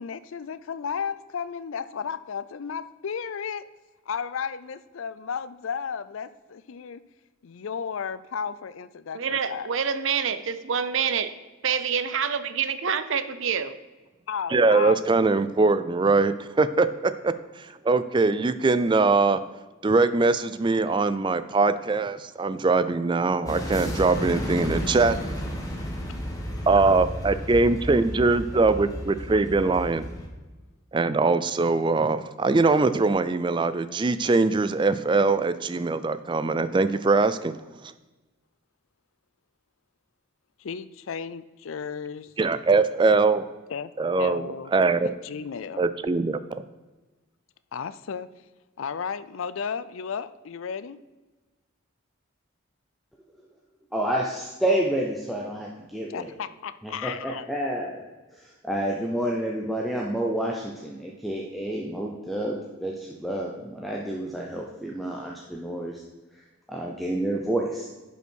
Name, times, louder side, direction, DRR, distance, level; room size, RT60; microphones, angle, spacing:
voice 1, 0.0-3.6 4.1-7.0 7.4-9.7 14.3-15.1 40.6-42.3 43.7-44.7 45.0-45.8 47.7-48.3 48.8-51.0 56.1-57.5, left 6 dB, 70° left, 15 dB, 0.4 m, -34 dB
voice 2, 9.1-11.3 11.6-13.8, right 7 dB, 65° right, 12 dB, 0.6 m, -27 dB
voice 3, 14.5-19.4 19.8-25.2 26.7-30.1 30.9-37.6 42.4-43.4 44.0-45.1 45.8-46.4, right 3 dB, 25° right, 13 dB, 0.3 m, -22 dB
sound 1, 23.5-30.3, equal, 15° left, 1.3 m, -32 dB
voice 4, 53.9-56.3 56.8-58.0 58.3-66.0 66.3-66.4 66.7-67.9, right 1 dB, ahead, -2 dB, 0.7 m, -29 dB
10.5 x 5.6 x 4.5 m, 1.2 s
head